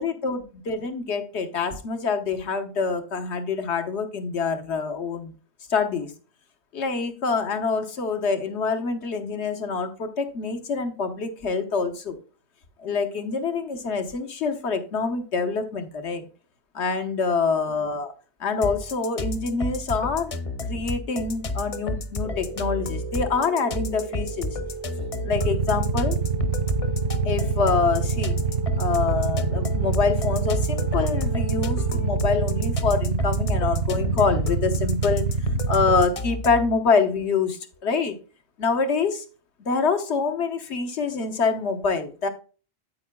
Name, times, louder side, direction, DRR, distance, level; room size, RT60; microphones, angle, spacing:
voice 1, 0.0-5.3 5.7-6.1 6.7-12.2 12.8-16.2 16.7-18.1 18.4-20.3 20.7-24.6 25.2-26.2 27.2-28.4 28.8-35.3 35.7-38.2 38.6-39.2 39.6-42.3, left 4 dB, 80° left, 7 dB, 1.4 m, -26 dB
sound 1, 18.6-36.7, left 2 dB, 40° left, 0.6 m, -31 dB
sound 2, 22.2-32.7, right 6 dB, 40° right, 0.5 m, -37 dB
Motorcycle / Idling, 25.3-36.0, right 4 dB, 65° right, 0.8 m, -26 dB
8.6 x 8.5 x 2.2 m, 0.36 s
omnidirectional pair, 1.1 m